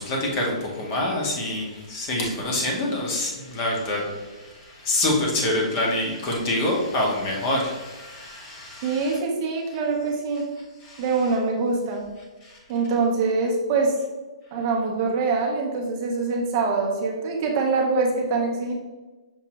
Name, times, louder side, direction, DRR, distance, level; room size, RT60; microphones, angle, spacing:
voice 1, 0.0-9.2 10.8-11.0 12.4-12.6, left 1 dB, 20° left, -1 dB, 0.7 m, -26 dB
voice 2, 8.8-10.5 11.0-12.0 12.7-13.9 14.5-18.7, right 4 dB, 20° right, 0 dB, 0.6 m, -24 dB
6.0 x 2.5 x 2.8 m, 1.2 s
hypercardioid pair, 180°, 3 cm